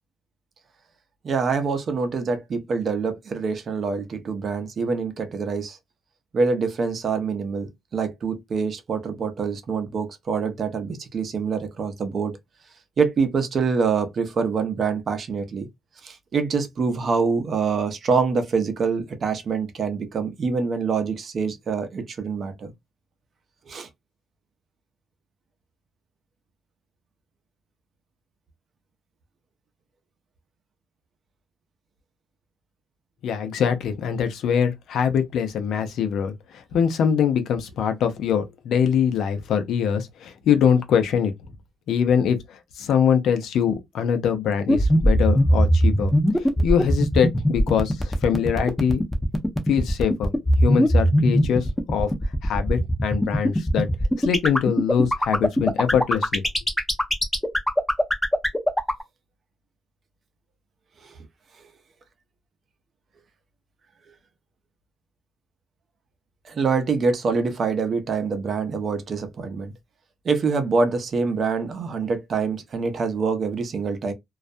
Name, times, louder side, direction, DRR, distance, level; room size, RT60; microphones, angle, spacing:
voice 1, 1.2-5.8 6.3-12.4 13.0-15.7 16.0-22.7 23.7-23.9 66.4-69.7 70.2-74.1, right 5 dB, 50° right, 0.6 m, -25 dB
voice 2, 33.2-36.3 36.7-41.3 41.9-46.1 46.4-49.0 49.7-50.3 50.6-52.1 52.4-53.9 54.2-56.4, left 8 dB, 75° left, 0.5 m, -23 dB
sound 1, 44.7-59.0, equal, 10° left, 0.7 m, -19 dB
2.3 x 2.1 x 2.5 m
cardioid pair, 90°, 0 cm